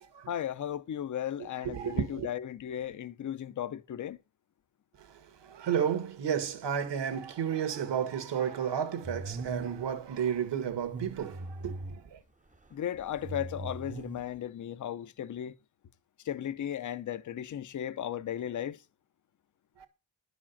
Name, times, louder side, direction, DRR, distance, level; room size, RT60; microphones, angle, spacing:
voice 1, 0.3-4.2 12.7-15.5 16.2-18.8, left 10 dB, 40° left, 0.6 m, -36 dB
voice 2, 1.4-2.3 5.4-12.2 19.8-19.9, right 8 dB, 65° right, 1.8 m, -32 dB
sound 1, 9.0-10.0 10.7-12.1 13.0-14.4, right 2 dB, 15° right, 0.7 m, -40 dB
11.5 x 5.0 x 7.1 m
wide cardioid pair, 165°, 45 cm